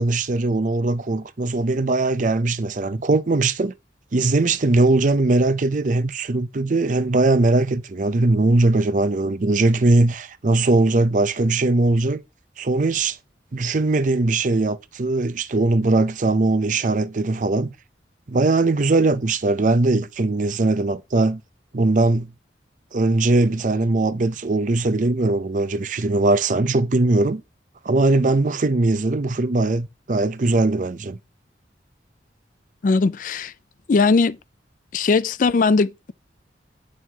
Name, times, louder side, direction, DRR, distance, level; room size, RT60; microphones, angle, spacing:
voice 1, 0.0-3.7 4.1-12.2 12.6-13.2 13.5-17.7 18.3-21.4 21.7-22.3 22.9-27.4 27.8-31.2, right 2 dB, 45° right, 0.6 m, -20 dB
voice 2, 32.8-33.5 33.9-34.4 34.9-36.1, left 4 dB, 50° left, 0.4 m, -19 dB
9.2 x 6.4 x 2.9 m
head